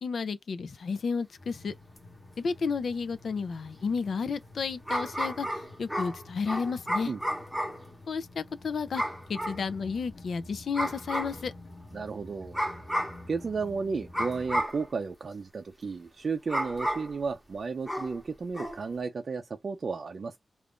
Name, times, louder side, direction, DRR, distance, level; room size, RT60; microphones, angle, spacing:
voice 1, 0.0-1.7 2.4-7.1 8.1-9.0 9.3-11.5, left 5 dB, 70° left, 0.4 m, -32 dB
sound 1, 1.4-14.6, left 1 dB, 50° left, 0.9 m, -50 dB
sound 2, 2.0-2.1 4.9-7.9 8.9-9.6 10.7-11.4 12.5-13.2 14.1-14.9 16.5-17.2 17.9-18.2 18.5-18.8, equal, ahead, 0.8 m, -32 dB
voice 2, 11.9-12.6 13.3-20.4, right 4 dB, 50° right, 0.4 m, -33 dB
2.4 x 2.4 x 3.5 m
wide cardioid pair, 150°, 0 cm